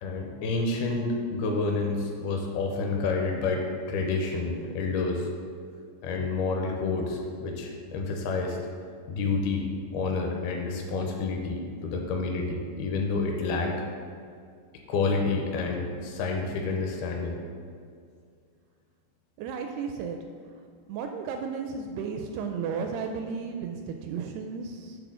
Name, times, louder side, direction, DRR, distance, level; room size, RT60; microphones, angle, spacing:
voice 1, 0.0-5.3 6.0-8.6 9.1-13.8 14.9-17.4, left 3 dB, 75° left, 1 dB, 2.4 m, -29 dB
voice 2, 19.4-20.2 20.9-25.0, right 5 dB, 85° right, 4 dB, 2.3 m, -34 dB
10.5 x 3.7 x 6.1 m, 2.2 s
omnidirectional pair, 5.0 m